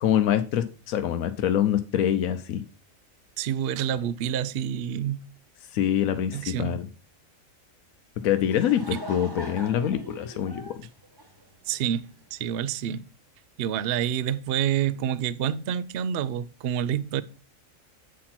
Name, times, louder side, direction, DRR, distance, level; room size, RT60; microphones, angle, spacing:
voice 1, 0.0-2.6 5.7-6.9 8.2-10.7, left 10 dB, 85° left, 1.1 m, -25 dB
voice 2, 3.4-5.3 6.3-6.8 8.9-9.0 11.7-13.0 13.6-17.2, right 9 dB, 60° right, 0.6 m, -28 dB
Laughter / Crowd, 8.2-12.0, right 1 dB, 20° right, 1.2 m, -41 dB
8.4 x 4.3 x 5.8 m
omnidirectional pair, 1.4 m